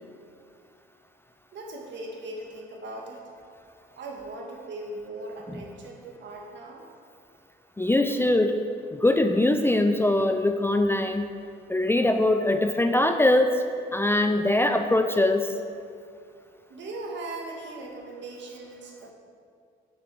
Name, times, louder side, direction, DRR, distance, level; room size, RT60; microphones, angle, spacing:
voice 1, 1.5-3.2 4.0-6.9 16.7-19.1, right 2 dB, 65° right, 0 dB, 1.9 m, -39 dB
voice 2, 7.8-8.6 8.9-11.3 11.7-13.6 13.9-15.5, left 1 dB, 10° left, 6 dB, 0.5 m, -22 dB
7.3 x 6.6 x 6.2 m, 2.3 s
cardioid pair, 90°, 20 cm